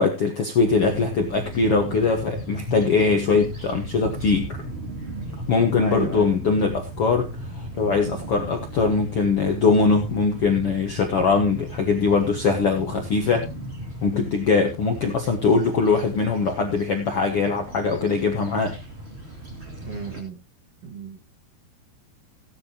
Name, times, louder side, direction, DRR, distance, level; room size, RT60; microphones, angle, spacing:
voice 1, 0.0-4.6 5.5-13.4 14.0-18.7, left 4 dB, 70° left, 3 dB, 1.3 m, -21 dB
sound 1, 0.6-20.2, right 1 dB, 20° right, 2.4 m, -36 dB
voice 2, 5.8-6.3 19.8-20.4 20.8-21.2, right 4 dB, 50° right, 3 dB, 2.0 m, -33 dB
17.0 x 9.5 x 2.9 m, 0.28 s
omnidirectional pair, 4.7 m